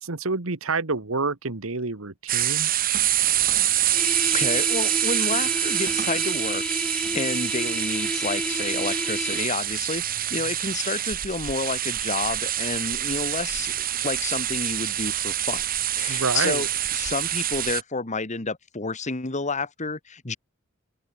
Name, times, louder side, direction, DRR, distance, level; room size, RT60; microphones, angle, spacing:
voice 1, 0.0-2.7 16.1-16.7, right 4 dB, 70° right, 1.6 m, -28 dB
sound 1, 2.3-17.8, right 12 dB, 45° right, 1.4 m, -26 dB
sound 2, 3.9-9.4, left 1 dB, 5° left, 3.6 m, -31 dB
voice 2, 4.3-15.6 15.9-20.4, left 3 dB, 35° left, 1.8 m, -30 dB
open air
head